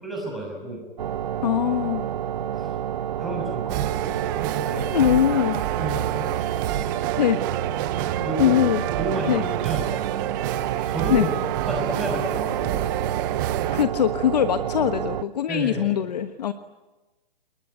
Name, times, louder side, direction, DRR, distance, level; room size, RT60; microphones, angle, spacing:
voice 1, 0.0-0.8 2.5-2.8 3.2-4.2 4.6-5.5 5.8-6.3 8.2-8.6 9.0-9.9 10.9-11.3 11.7-12.8 15.5-15.9, right 1 dB, ahead, 0 dB, 6.7 m, -31 dB
sound 1, 1.0-15.2, right 10 dB, 45° right, 0.9 m, -29 dB
voice 2, 1.4-2.0 4.9-5.6 7.2-7.4 8.4-8.8 9.3-9.4 11.1-11.3 13.7-16.5, left 10 dB, 45° left, 10 dB, 1.3 m, -22 dB
sound 2, 3.7-13.8, right 13 dB, 20° right, 1.0 m, -28 dB
29.0 x 21.5 x 9.4 m, 1.1 s
hypercardioid pair, 160°, 29 cm